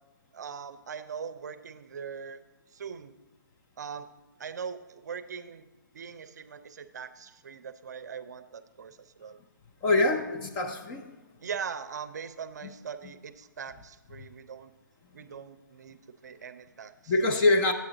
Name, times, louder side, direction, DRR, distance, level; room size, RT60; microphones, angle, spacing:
voice 1, 0.3-2.4 2.7-3.1 3.8-4.1 4.4-5.7 5.9-9.4 11.4-14.7 15.1-17.1, right 6 dB, 55° right, 12 dB, 0.6 m, -41 dB
voice 2, 9.8-11.2 17.1-17.7, left 2 dB, 15° left, 4 dB, 0.5 m, -24 dB
9.5 x 8.3 x 3.9 m, 1.2 s
hypercardioid pair, 160°, 11 cm